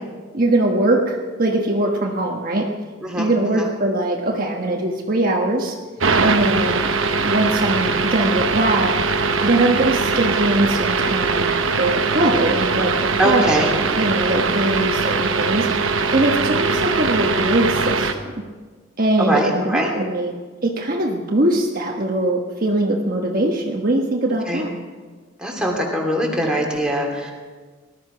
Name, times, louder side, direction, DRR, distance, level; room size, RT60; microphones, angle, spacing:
voice 1, 0.3-2.7 3.1-5.7 6.2-6.9 7.2-8.9 9.4-12.9 13.2-15.7 16.1-18.4 19.0-20.3 20.6-24.7, right 1 dB, 45° right, 0 dB, 1.3 m, -21 dB
voice 2, 3.0-3.7 13.2-13.7 19.2-19.9 24.5-24.6 25.4-27.3, right 1 dB, 5° right, -1 dB, 2.8 m, -22 dB
sound 1, 6.0-18.1, right 4 dB, 80° right, 1.1 m, -21 dB
19.0 x 13.0 x 5.1 m, 1.4 s
head